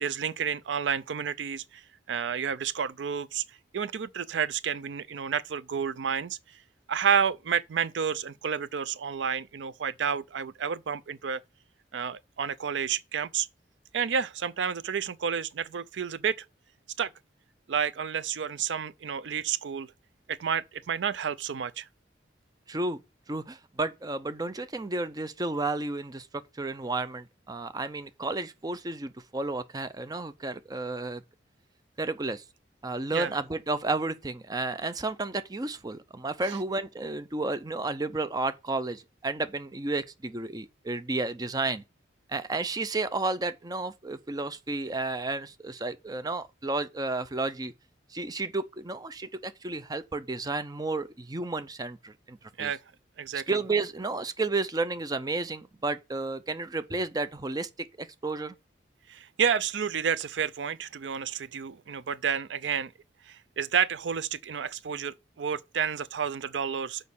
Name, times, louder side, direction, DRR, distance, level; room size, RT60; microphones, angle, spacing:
voice 1, 0.0-1.8 2.1-3.4 3.7-6.4 6.9-11.4 11.9-13.5 13.9-16.4 17.0-17.1 17.7-19.9 20.3-21.9 33.1-33.3 36.4-36.6 52.6-52.8 53.2-53.5 59.1-62.9 63.3-67.1, right 7 dB, 75° right, 0.4 m, -30 dB
voice 2, 22.7-23.0 23.3-31.2 32.0-32.4 32.8-41.8 42.3-47.7 48.1-52.7 53.3-57.7 58.0-58.5, right 3 dB, 20° right, 0.6 m, -32 dB
6.5 x 5.1 x 7.0 m
head